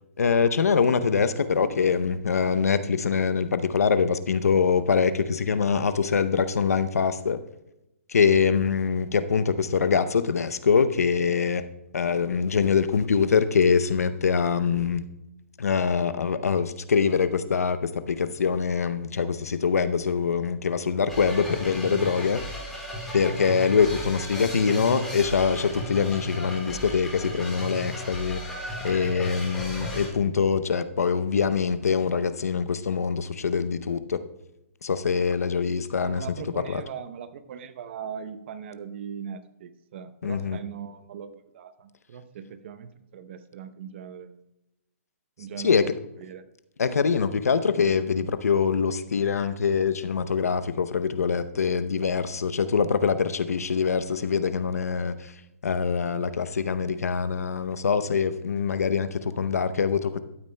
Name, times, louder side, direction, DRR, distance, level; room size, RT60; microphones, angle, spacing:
voice 1, 0.2-7.4 8.1-11.6 11.9-15.0 15.6-22.4 23.1-28.4 28.8-34.2 34.8-36.2 36.7-36.8 40.2-40.6 45.6-45.8 46.8-55.3 55.6-60.2, left 6 dB, 90° left, 11 dB, 0.7 m, -24 dB
sound 1, 21.1-30.1, left 1 dB, 5° left, 2.5 m, -35 dB
voice 2, 24.0-24.8 36.0-44.4 45.4-46.4, right 7 dB, 50° right, 12 dB, 0.7 m, -40 dB
12.5 x 8.7 x 2.2 m, 0.90 s
hypercardioid pair, 145°, 8 cm